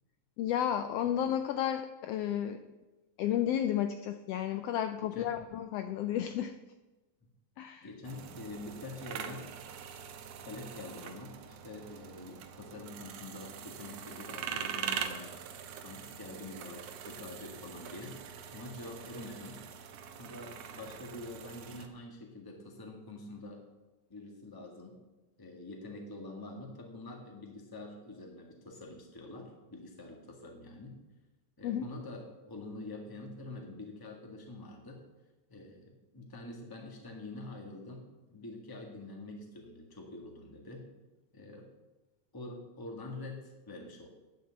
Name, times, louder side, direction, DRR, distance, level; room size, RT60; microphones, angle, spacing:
voice 1, 0.4-2.6 3.2-6.5 7.6-7.9 31.6-31.8, left 10 dB, 90° left, 9 dB, 1.3 m, -32 dB
voice 2, 5.0-5.4 7.8-9.5 10.4-15.3 15.8-18.2 18.5-19.6 20.2-23.6 24.1-25.0 25.4-30.9 31.6-35.0 35.5-40.8 41.3-41.7 42.3-44.1, left 2 dB, 10° left, 1 dB, 1.0 m, -46 dB
sound 1, 8.0-21.9, right 8 dB, 75° right, 1.9 m, -43 dB
9.8 x 6.9 x 7.5 m, 1.1 s
omnidirectional pair, 3.3 m